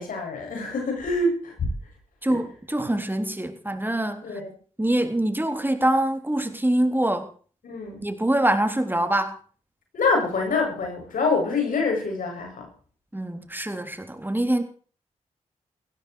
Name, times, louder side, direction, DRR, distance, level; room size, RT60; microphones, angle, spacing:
voice 1, 0.0-1.6 2.2-2.4 4.2-4.5 7.6-8.0 9.9-12.7, left 3 dB, 80° left, 2 dB, 7.8 m, -26 dB
voice 2, 2.2-4.4 4.8-7.3 8.0-9.4 13.1-14.6, right 1 dB, 15° right, 7 dB, 3.6 m, -24 dB
16.5 x 16.5 x 4.8 m, 0.43 s
cardioid pair, 45°, 14 cm